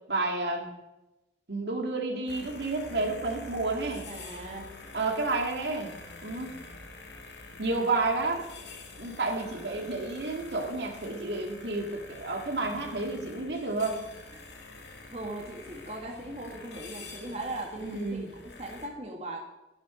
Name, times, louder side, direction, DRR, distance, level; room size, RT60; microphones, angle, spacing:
voice 1, 0.1-0.7 1.5-4.1 4.9-5.9 6.2-6.5 7.6-8.4 9.0-14.0 17.8-18.3, right 3 dB, 70° right, 2 dB, 2.2 m, -30 dB
sound 1, 2.3-18.9, left 3 dB, 70° left, 2.1 m, -47 dB
voice 2, 4.1-4.7 15.1-19.4, right 1 dB, 40° right, 0 dB, 1.8 m, -39 dB
13.0 x 10.5 x 5.1 m, 0.98 s
head